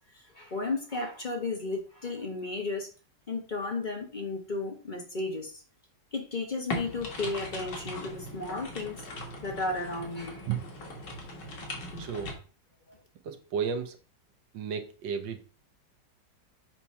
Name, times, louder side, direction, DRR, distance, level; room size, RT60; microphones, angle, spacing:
voice 1, 0.1-2.9 3.3-5.6 6.1-9.0 9.4-10.5 11.7-11.8 12.9-13.0, left 3 dB, 30° left, 1.0 m, -34 dB
sound 1, 6.7-12.3, left 1 dB, 70° left, 2.2 m, -39 dB
voice 2, 12.0-12.4 13.2-14.0 14.5-15.4, right 7 dB, 85° right, 1.6 m, -33 dB
7.4 x 3.0 x 5.6 m
omnidirectional pair, 1.9 m